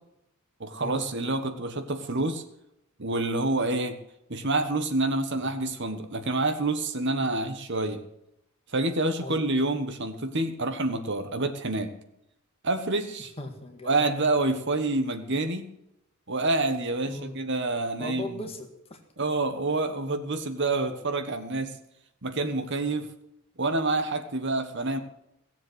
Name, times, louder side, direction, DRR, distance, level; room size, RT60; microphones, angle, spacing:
voice 1, 0.6-2.4 3.0-4.0 4.3-8.0 8.7-11.9 12.6-13.3 13.8-15.7 16.3-18.4 19.2-21.8 22.2-23.1 23.6-25.0, right 2 dB, 55° right, 8 dB, 1.4 m, -27 dB
voice 2, 13.4-14.0 17.1-17.4 18.0-19.0, left 2 dB, 25° left, 5 dB, 1.8 m, -38 dB
17.0 x 7.5 x 8.1 m, 0.81 s
head